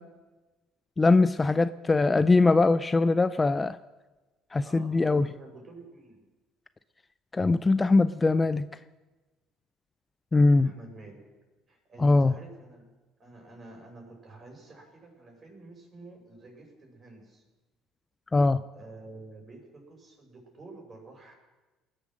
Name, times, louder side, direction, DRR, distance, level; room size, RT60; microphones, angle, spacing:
voice 1, 1.0-3.8 4.5-5.3 7.3-8.7 10.3-10.7 12.0-12.4 18.3-18.6, left 3 dB, 20° left, 15 dB, 0.4 m, -22 dB
voice 2, 4.6-6.2 10.5-11.2 11.7-12.8 13.2-17.4 18.7-21.3, right 2 dB, 35° right, 0 dB, 6.0 m, -49 dB
20.5 x 7.6 x 6.2 m, 1.2 s
hypercardioid pair, 70°, 0 cm